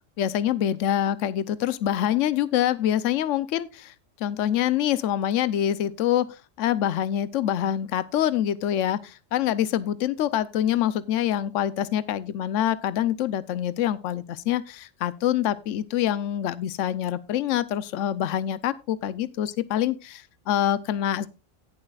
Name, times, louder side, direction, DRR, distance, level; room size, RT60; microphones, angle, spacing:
voice 1, 0.2-3.9 4.2-6.3 6.6-21.3, left 11 dB, 75° left, 1.0 m, -25 dB
17.5 x 7.5 x 2.3 m
omnidirectional pair, 1.3 m